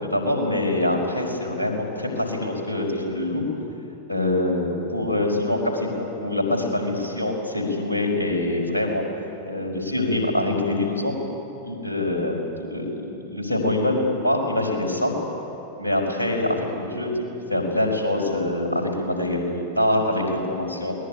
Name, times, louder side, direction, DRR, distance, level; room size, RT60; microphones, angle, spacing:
voice 1, 0.0-3.4 4.1-9.0 9.4-11.1 11.6-12.9 13.3-15.1 15.8-17.1 17.5-20.9, left 1 dB, 85° left, 1 dB, 5.0 m, -24 dB
22.0 x 20.0 x 10.0 m, 2.8 s
figure-of-eight pair, 90°, 0 cm